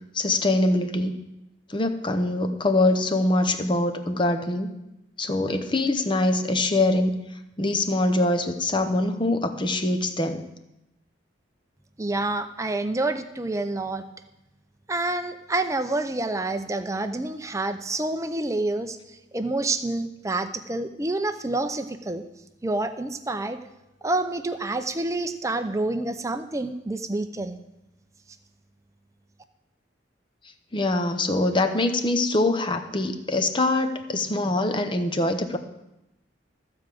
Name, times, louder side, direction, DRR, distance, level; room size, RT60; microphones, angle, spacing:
voice 1, 0.1-1.2 1.7-4.7 5.2-7.2 7.6-10.5 30.7-35.6, left 2 dB, 25° left, 7 dB, 0.8 m, -23 dB
voice 2, 12.0-14.0 14.9-19.0 19.3-22.2 22.6-23.6 24.0-27.6, right 2 dB, 15° right, 8 dB, 0.6 m, -28 dB
14.5 x 4.9 x 7.6 m, 0.93 s
head